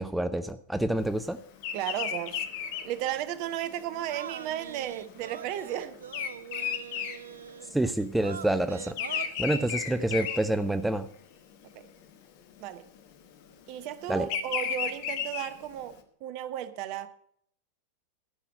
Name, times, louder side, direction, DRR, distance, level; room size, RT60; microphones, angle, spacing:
voice 1, 0.0-1.4 7.7-11.1 14.1-14.3, right 1 dB, 5° right, 0.5 m, -28 dB
Bird vocalization bird call bird song, 1.6-8.0 8.3-11.2 11.6-12.0 13.0-15.9, left 8 dB, 50° left, 1.2 m, -34 dB
voice 2, 1.7-2.4 2.8-6.0 11.7-11.8 12.6-12.8 13.7-15.9 16.2-17.1, right 11 dB, 45° right, 0.8 m, -34 dB
sound 1, 3.4-7.8 8.2-10.4, right 8 dB, 65° right, 0.4 m, -44 dB
13.0 x 5.9 x 7.6 m
figure-of-eight pair, 90°, 0 cm